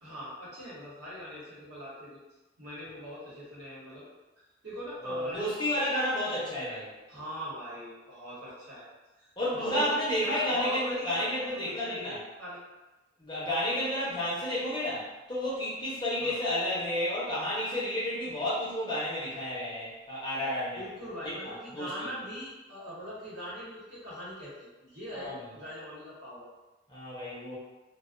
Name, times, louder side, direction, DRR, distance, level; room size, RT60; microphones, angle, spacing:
voice 1, 0.0-2.2 2.6-4.0 4.6-5.9 7.1-8.9 9.2-12.6 16.2-16.4 20.7-26.4, equal, 60° right, -9 dB, 1.0 m, -41 dB
voice 2, 5.0-6.9 9.4-12.2 13.2-20.8 21.4-22.1 25.1-25.4 26.9-27.6, left 1 dB, 25° left, -9 dB, 0.7 m, -31 dB
2.3 x 2.2 x 2.4 m, 1.1 s
head